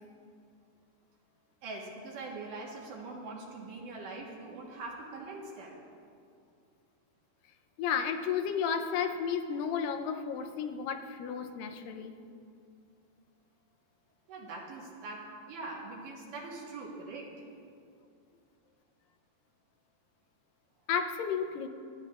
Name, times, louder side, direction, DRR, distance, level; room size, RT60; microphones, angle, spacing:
voice 1, 1.6-5.8 14.3-17.3, right 3 dB, 75° right, -2 dB, 2.9 m, -42 dB
voice 2, 7.8-12.2 20.9-21.7, left 7 dB, 85° left, 7 dB, 2.4 m, -32 dB
26.0 x 10.0 x 2.4 m, 2.4 s
omnidirectional pair, 3.9 m